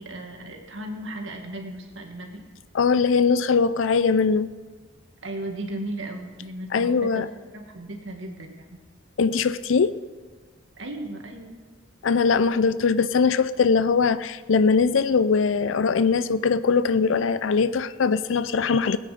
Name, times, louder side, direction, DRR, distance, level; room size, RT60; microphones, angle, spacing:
voice 1, 0.0-2.4 5.2-7.3 7.5-8.6 10.8-11.6, right 1 dB, 75° right, 1.9 m, -35 dB
voice 2, 2.7-4.5 6.7-7.3 9.2-10.0 12.0-19.0, left 5 dB, 80° left, 0.5 m, -21 dB
20.0 x 8.9 x 5.0 m
head